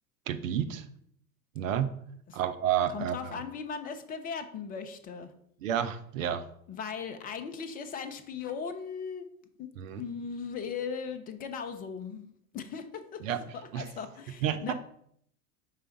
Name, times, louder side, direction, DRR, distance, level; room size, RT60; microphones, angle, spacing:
voice 1, 0.3-0.8 1.5-1.9 2.3-3.4 5.6-6.4 9.8-10.0 13.2-13.4 13.7-13.8 14.4-14.7, right 9 dB, 60° right, 9 dB, 0.7 m, -30 dB
voice 2, 2.9-5.3 6.7-9.3 9.6-9.7 10.0-12.3 12.5-13.2 13.5-14.7, left 6 dB, 20° left, 8 dB, 0.6 m, -38 dB
5.6 x 3.3 x 5.1 m, 0.68 s
figure-of-eight pair, 80°, 43 cm